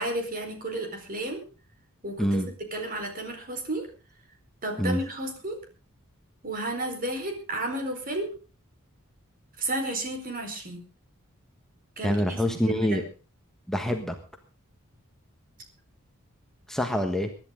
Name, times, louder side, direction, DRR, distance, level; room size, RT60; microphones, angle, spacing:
voice 1, 0.0-1.4 2.0-2.4 2.7-3.9 4.6-5.6 6.4-8.3 9.6-10.8 12.0-13.0, right 1 dB, 40° right, 4 dB, 4.6 m, -32 dB
voice 2, 12.0-13.0 13.7-14.1 16.7-17.3, equal, ahead, 3 dB, 1.4 m, -26 dB
23.0 x 11.0 x 3.8 m, 0.35 s
head